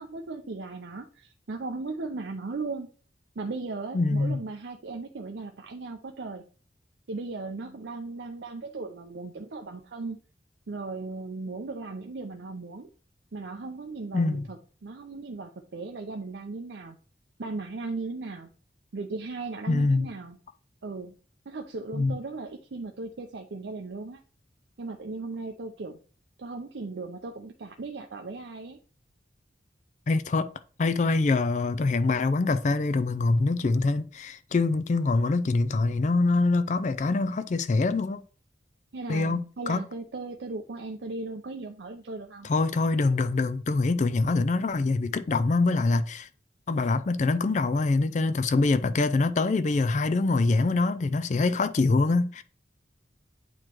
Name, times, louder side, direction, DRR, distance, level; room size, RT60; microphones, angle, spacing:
voice 1, 0.0-2.9 3.4-6.4 7.1-10.2 10.7-12.9 13.3-17.0 17.4-18.5 18.9-20.4 20.8-21.1 21.5-24.2 24.8-26.0 26.4-28.8 38.9-42.5, right 3 dB, 75° right, 0.6 m, -37 dB
voice 2, 3.9-4.4 14.1-14.5 19.7-20.1 21.9-22.2 30.1-30.5 30.8-38.2 39.1-39.4 39.7-39.8 42.4-46.3 46.7-52.4, left 3 dB, 40° left, 0.4 m, -24 dB
8.8 x 3.0 x 4.5 m
head